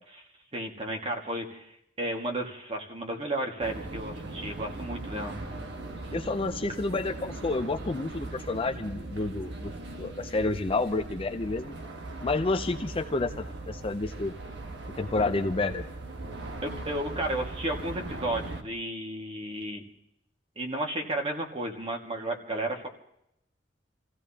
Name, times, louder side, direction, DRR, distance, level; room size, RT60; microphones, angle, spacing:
voice 1, 0.5-5.4 16.6-19.8 20.6-22.9, right 1 dB, 30° right, 1 dB, 1.8 m, -33 dB
sound 1, 3.6-18.6, right 2 dB, 65° right, 1.4 m, -39 dB
voice 2, 6.1-9.7 10.0-11.8 12.2-14.4 15.0-15.9, left 3 dB, 30° left, 7 dB, 0.5 m, -29 dB
28.0 x 15.5 x 2.9 m, 0.78 s
head